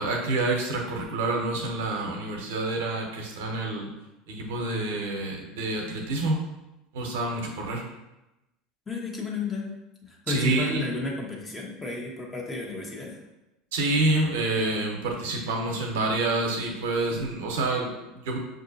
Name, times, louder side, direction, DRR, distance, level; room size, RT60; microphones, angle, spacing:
voice 1, 0.0-3.9 4.3-6.4 6.9-7.8 10.3-10.8 13.7-18.4, right 2 dB, 80° right, 1 dB, 0.8 m, -28 dB
voice 2, 8.9-9.7 10.0-13.2, left 2 dB, 20° left, -1 dB, 1.1 m, -32 dB
5.7 x 2.6 x 2.7 m, 0.96 s
hypercardioid pair, 90°, 0 cm